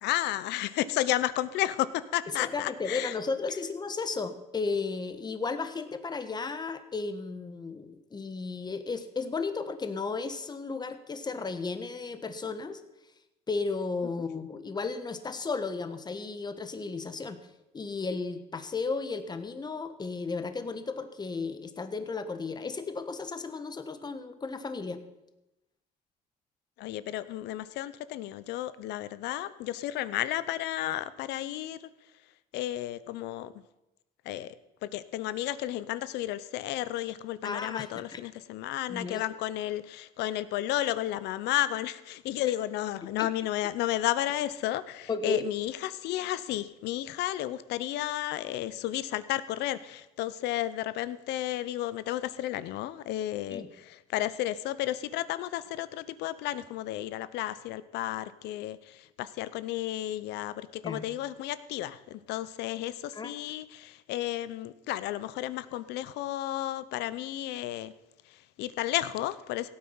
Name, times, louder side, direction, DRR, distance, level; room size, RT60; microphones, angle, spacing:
voice 1, 0.0-3.1 26.8-31.9 32.5-33.6 34.2-34.5 34.8-67.9 68.3-69.7, left 14 dB, 85° left, 15 dB, 0.8 m, -32 dB
voice 2, 2.4-12.8 13.5-17.4 17.7-25.0 37.4-38.2 38.9-39.3 43.2-43.3 45.1-45.5 53.5-53.7 60.8-61.1 63.1-63.3, left 4 dB, 25° left, 10 dB, 1.3 m, -34 dB
17.0 x 8.7 x 5.6 m, 0.96 s
cardioid pair, 110°, 17 cm